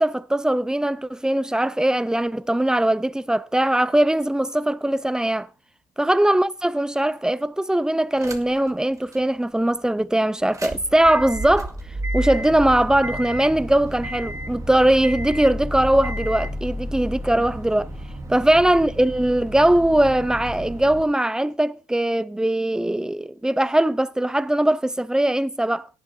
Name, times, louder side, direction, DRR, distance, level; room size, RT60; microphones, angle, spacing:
voice 1, 0.0-5.5 6.0-11.8 12.1-17.9 18.3-25.9, right 1 dB, 5° right, 0.5 m, -20 dB
sound 1, 8.2-8.7 9.1-9.2 10.4-21.0, equal, 20° right, 2.1 m, -32 dB
17.0 x 11.0 x 2.7 m
cardioid pair, 110°, 17 cm